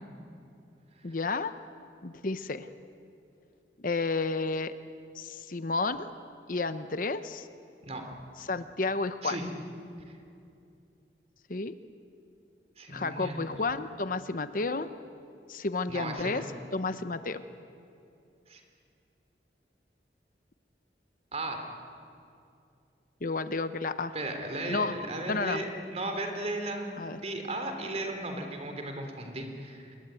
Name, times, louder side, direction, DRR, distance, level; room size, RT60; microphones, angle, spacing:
voice 1, 1.0-1.5 2.0-2.7 3.8-4.7 5.2-6.1 6.5-7.5 8.5-9.4 11.5-11.7 12.9-14.9 15.5-16.4 16.7-17.4 23.2-24.1 24.7-24.9 25.3-25.6 27.0-27.2, left 3 dB, 50° left, 11 dB, 0.9 m, -31 dB
voice 2, 12.8-13.5 15.9-16.5 18.5-18.6 21.3-21.7 24.1-30.0, right 2 dB, 35° right, 4 dB, 3.6 m, -36 dB
27.0 x 22.5 x 9.1 m, 2.6 s
head